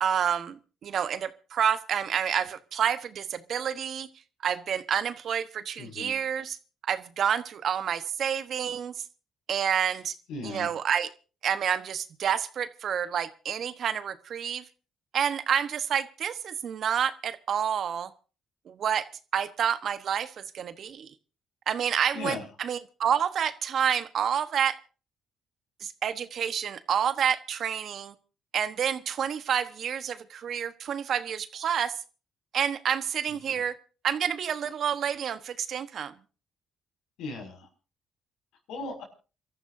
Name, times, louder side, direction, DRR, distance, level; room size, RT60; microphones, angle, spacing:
voice 1, 0.0-4.1 4.4-6.6 6.8-8.9 9.5-10.1 10.4-11.1 11.4-14.6 15.1-18.1 18.7-19.1 19.3-21.1 21.7-24.8 25.8-28.1 28.5-32.0 32.5-33.7 34.0-36.1, right 8 dB, 60° right, 13 dB, 1.2 m, -29 dB
voice 2, 5.8-6.1 10.3-10.7 22.1-22.4 37.2-37.7 38.7-39.0, left 3 dB, 80° left, 3 dB, 6.0 m, -36 dB
29.0 x 13.5 x 2.7 m, 0.36 s
supercardioid pair, 75°, 0 cm